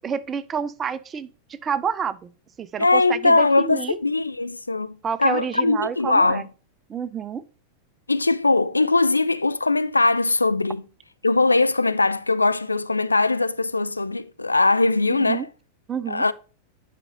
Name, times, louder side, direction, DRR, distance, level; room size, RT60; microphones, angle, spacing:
voice 1, 0.0-2.3 2.6-4.0 5.0-6.4 6.9-7.4 15.1-15.5 15.9-16.2, right 7 dB, 25° right, 0.5 m, -29 dB
voice 2, 2.8-6.5 8.1-10.8 11.2-15.5 16.1-16.3, left 3 dB, 80° left, 0.3 m, -21 dB
9.6 x 5.2 x 2.8 m
figure-of-eight pair, 90°, 0 cm